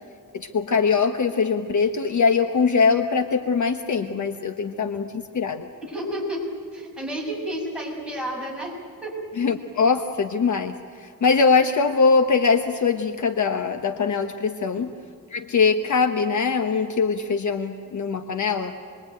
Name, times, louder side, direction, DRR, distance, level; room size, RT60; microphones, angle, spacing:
voice 1, 0.3-5.7 9.4-14.9 15.3-18.7, left 5 dB, 50° left, 6 dB, 1.1 m, -22 dB
voice 2, 5.8-6.4 6.7-8.7 9.0-9.1, equal, 5° right, -4 dB, 6.8 m, -30 dB
27.5 x 22.0 x 9.2 m, 2.2 s
wide cardioid pair, 150°, 37 cm